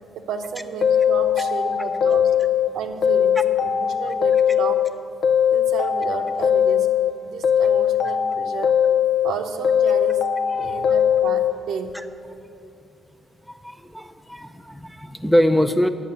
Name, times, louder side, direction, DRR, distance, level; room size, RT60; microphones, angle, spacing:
voice 1, 0.1-2.3 2.7-4.9 5.5-6.9 7.2-8.7 9.2-10.3 10.5-12.0, right 6 dB, 85° right, 4 dB, 0.8 m, -32 dB
sound 1, 0.8-2.7 3.0-4.9 5.2-7.1 7.4-9.3 9.6-11.5, left 9 dB, 65° left, 0.5 m, -20 dB
voice 2, 13.5-15.9, equal, ahead, 7 dB, 0.5 m, -23 dB
9.7 x 7.6 x 6.9 m, 2.6 s
cardioid pair, 80°, 0 cm